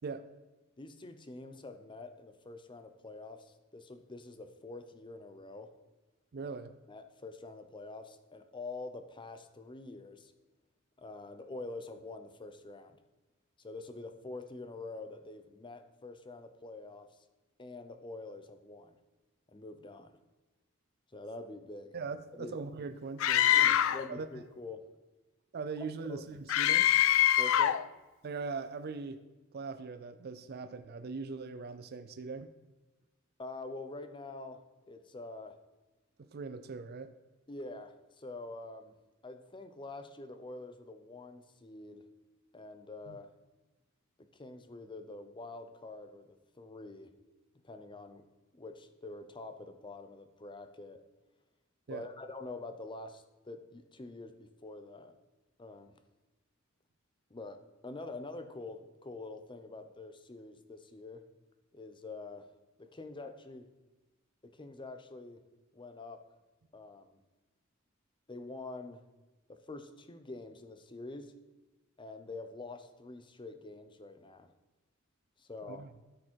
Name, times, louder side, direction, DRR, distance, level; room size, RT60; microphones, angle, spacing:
voice 1, 0.8-5.7 6.9-10.3 11.0-13.0 13.6-17.1 17.6-19.0 19.5-20.1 21.1-22.0 22.3-22.6 23.5-24.9 26.1-26.2 27.4-27.8 33.4-34.6 34.9-35.6 37.5-38.9 39.2-42.0 42.5-43.3 44.2-46.3 46.5-47.1 47.6-48.2 48.5-51.0 51.9-55.1 55.6-55.9 57.3-61.2 61.7-62.5 62.8-63.7 64.4-65.4 65.7-66.2 66.7-67.2 68.3-69.0 69.5-71.3 72.0-74.5 75.4-75.8, left 2 dB, 25° left, 8 dB, 0.7 m, -46 dB
voice 2, 6.3-6.7 21.9-23.6 24.1-24.3 25.5-26.9 28.2-29.2 29.5-32.5 36.2-37.1 43.1-43.2 51.9-52.0 75.7-75.9, right 4 dB, 50° right, 9 dB, 0.4 m, -40 dB
Screaming, 23.2-24.1 26.5-27.9, left 11 dB, 70° left, 0.3 m, -24 dB
13.0 x 5.1 x 4.4 m, 1.1 s
head